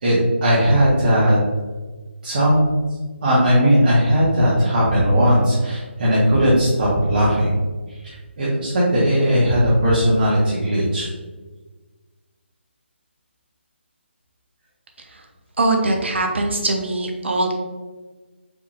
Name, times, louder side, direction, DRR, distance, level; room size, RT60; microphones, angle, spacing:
voice 1, 0.0-1.4 2.2-2.8 3.2-7.5 7.9-11.1, equal, 45° right, -9 dB, 1.5 m, -18 dB
voice 2, 15.6-17.5, right 2 dB, 70° right, 2 dB, 0.9 m, -22 dB
4.7 x 4.1 x 2.5 m, 1.3 s
figure-of-eight pair, 155°, 7 cm